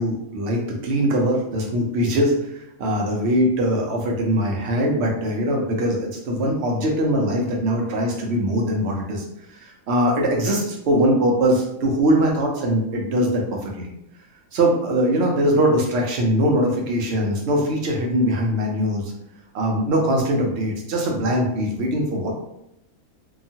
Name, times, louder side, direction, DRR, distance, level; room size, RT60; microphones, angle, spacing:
voice 1, 0.0-2.3 2.8-9.2 9.5-13.9 14.5-19.1 19.5-22.3, equal, 60° right, 0 dB, 0.8 m, -21 dB
2.9 x 2.3 x 2.7 m, 0.79 s
omnidirectional pair, 1.5 m